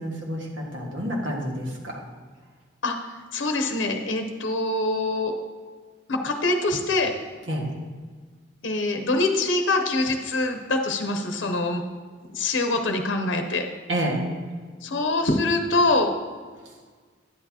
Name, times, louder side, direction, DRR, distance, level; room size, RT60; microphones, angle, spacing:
voice 1, 0.0-2.0 7.5-7.7 13.9-14.2, right 1 dB, 80° right, -1 dB, 1.6 m, -29 dB
voice 2, 2.8-5.3 6.1-7.1 8.6-11.8 12.3-13.7 14.8-16.1, left 2 dB, 75° left, 5 dB, 0.7 m, -24 dB
9.9 x 8.3 x 2.8 m, 1.5 s
head